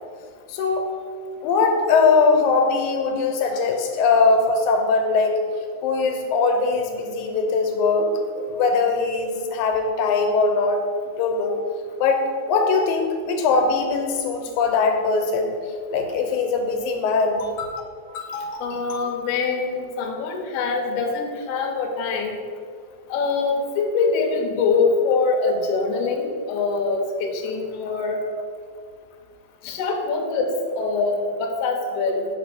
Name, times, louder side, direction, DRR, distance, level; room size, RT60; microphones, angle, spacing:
voice 1, 0.5-0.9 1.4-5.4 5.8-8.1 8.4-10.8 11.2-11.6 12.0-12.2 12.5-15.6 15.9-17.4 29.6-29.8, left 4 dB, 90° left, 4 dB, 2.1 m, -21 dB
voice 2, 17.2-17.7 18.1-22.4 23.1-28.2 29.6-32.3, left 4 dB, 75° left, 2 dB, 1.6 m, -24 dB
4.5 x 4.2 x 5.6 m, 2.1 s
omnidirectional pair, 3.3 m